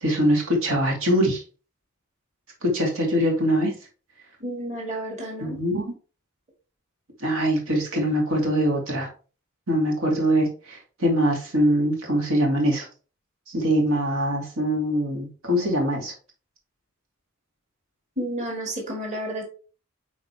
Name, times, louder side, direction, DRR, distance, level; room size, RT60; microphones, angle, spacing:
voice 1, 0.0-1.4 2.6-3.7 5.4-5.8 7.2-9.1 9.7-12.9 13.5-16.1, equal, 85° right, 0 dB, 2.4 m, -23 dB
voice 2, 4.4-5.6 18.2-19.4, right 1 dB, 35° right, 0 dB, 2.0 m, -31 dB
9.3 x 4.3 x 3.4 m, 0.37 s
head